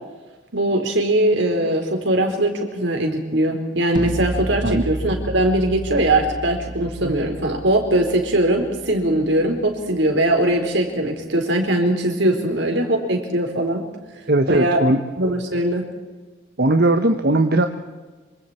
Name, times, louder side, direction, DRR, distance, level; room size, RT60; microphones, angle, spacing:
voice 1, 0.5-13.8 14.5-14.8 15.2-15.8, right 1 dB, 75° right, 3 dB, 4.6 m, -20 dB
sound 1, 4.0-9.9, right 1 dB, 25° right, 0.9 m, -31 dB
voice 2, 14.3-15.0 16.6-17.7, right 2 dB, 55° right, 6 dB, 1.2 m, -18 dB
27.0 x 25.5 x 4.5 m, 1.3 s
head